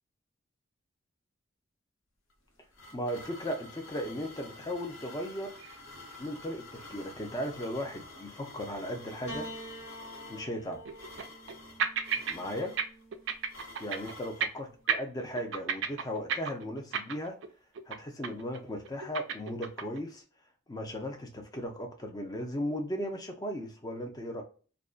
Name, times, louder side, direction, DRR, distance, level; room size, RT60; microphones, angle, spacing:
sound 1, 2.3-14.5, left 2 dB, 85° left, 0.8 m, -49 dB
voice 1, 2.9-5.5 6.2-9.5 10.3-10.8 12.3-12.8 13.8-17.4 17.9-20.2 20.7-24.4, equal, 20° left, 4 dB, 0.4 m, -36 dB
sound 2, 5.6-5.8 6.1-6.2 6.8-6.9 10.1-10.2 10.8-11.5 11.8-12.4 12.6-12.8 13.1-14.1 14.4-14.6 14.9-17.5 17.7-18.0 18.2-18.6 18.8-20.0, right 6 dB, 65° right, 0.4 m, -32 dB
Piano, 9.3-13.8 14.8-15.5, equal, 70° left, 1.4 m, -47 dB
2.5 x 2.1 x 2.3 m, 0.39 s
head